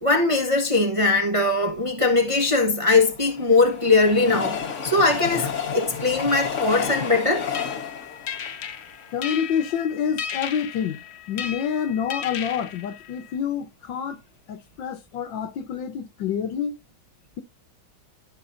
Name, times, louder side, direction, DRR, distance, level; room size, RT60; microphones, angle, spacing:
voice 1, 0.0-7.5, left 3 dB, 20° right, 0.9 m, -21 dB
Train, 2.5-9.8 10.3-10.4 10.6-10.7, left 7 dB, 45° left, 1.2 m, -31 dB
sound 1, 6.7-13.4, left 8 dB, 85° left, 0.5 m, -36 dB
voice 2, 9.1-11.0 11.3-14.2 14.5-16.7, left 8 dB, 70° left, 1.6 m, -27 dB
15.0 x 5.5 x 2.6 m
omnidirectional pair, 2.2 m